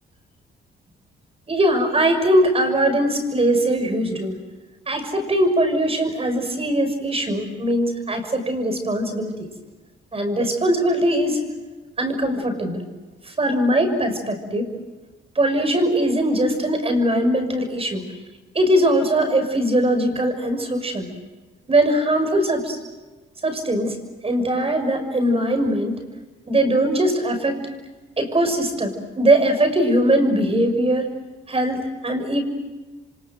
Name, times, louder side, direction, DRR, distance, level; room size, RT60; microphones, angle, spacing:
voice 1, 1.5-4.4 4.9-9.3 10.1-11.4 12.0-12.9 13.2-14.7 15.3-18.0 18.5-21.1 21.7-22.8 23.4-24.0 24.2-26.0 26.5-27.6 28.2-31.1 31.5-32.4, right 1 dB, 30° right, 7 dB, 6.3 m, -21 dB
29.0 x 25.0 x 7.9 m, 1.3 s
cardioid pair, 90°, 20 cm